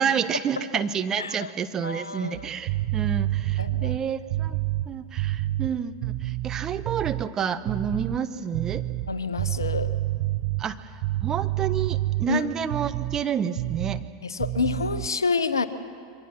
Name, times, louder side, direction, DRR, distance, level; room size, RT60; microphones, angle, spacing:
voice 1, 0.0-4.6 4.9-8.8 10.6-10.9 11.2-14.1, right 7 dB, 25° right, 10 dB, 1.0 m, -29 dB
voice 2, 1.2-1.5 1.8-2.3 3.6-3.9 9.1-9.9 12.3-12.4 14.2-15.7, left 4 dB, 80° left, 13 dB, 1.1 m, -28 dB
sound 1, 2.3-7.3 7.6-8.2 8.5-13.2 13.6-14.1 14.4-15.1, right 16 dB, 50° right, 0.6 m, -28 dB
27.5 x 23.5 x 6.1 m, 2.3 s
figure-of-eight pair, 90°, 2 cm